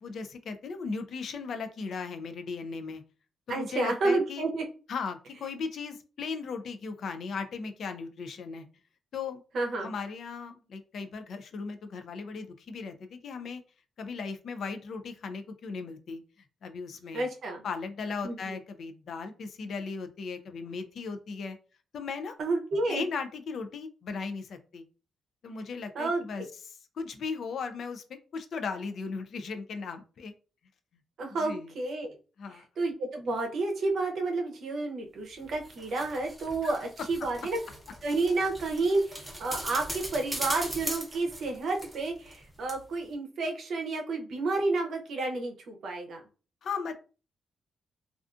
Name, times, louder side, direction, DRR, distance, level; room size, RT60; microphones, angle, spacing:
voice 1, 0.0-3.0 3.5-4.4 4.9-8.7 9.1-9.4 9.8-13.6 14.0-16.2 16.6-17.3 17.6-21.6 21.9-22.3 22.9-24.8 25.4-30.3 31.4-31.7 32.4-32.6 36.6-36.8 46.6-46.9, left 5 dB, 55° left, 8 dB, 0.3 m, -37 dB
voice 2, 3.5-4.6 9.5-9.9 17.1-17.6 18.2-18.6 22.4-23.0 25.9-26.2 31.2-32.1 32.5-37.6 38.0-46.2, right 3 dB, 60° right, 3 dB, 0.6 m, -30 dB
sound 1, 35.4-42.4 42.7-42.8, right 1 dB, 5° right, 0.7 m, -39 dB
2.4 x 2.3 x 2.4 m, 0.36 s
cardioid pair, 130°, 0 cm